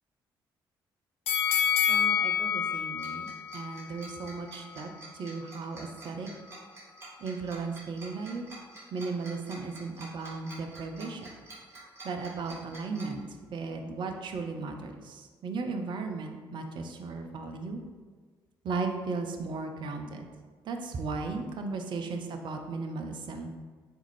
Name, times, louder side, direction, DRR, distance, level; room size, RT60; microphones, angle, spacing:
sound 1, 1.3-4.4 4.8-4.9, left 8 dB, 55° left, 0.4 m, -28 dB
voice 1, 1.9-6.3 7.2-8.5 8.9-11.3 12.0-13.2 13.5-17.8 18.6-20.3 20.6-23.5, right 4 dB, 40° right, 5 dB, 0.4 m, -36 dB
Tick-tock, 3.0-13.0, right 2 dB, 20° right, 1.3 m, -47 dB
3.6 x 2.5 x 3.1 m, 1.4 s
figure-of-eight pair, 45°, 12 cm